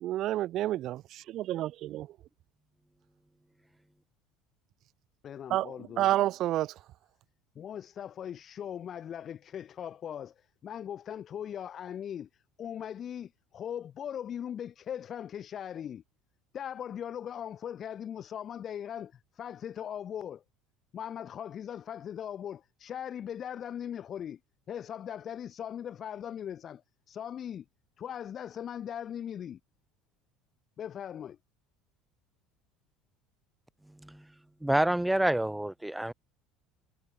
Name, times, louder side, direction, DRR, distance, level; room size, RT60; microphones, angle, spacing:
voice 1, 0.0-1.0 1.3-2.1 5.5-6.7, right 14 dB, 55° right, 1.3 m, -29 dB
voice 2, 5.2-6.1 7.5-12.3 12.6-16.0 16.5-20.4 20.9-24.4 24.7-26.8 27.1-27.6 28.0-29.6 30.8-31.4, left 9 dB, 45° left, 1.3 m, -39 dB
voice 3, 34.6-36.1, right 1 dB, 5° right, 0.6 m, -27 dB
supercardioid pair, 90°, 0 cm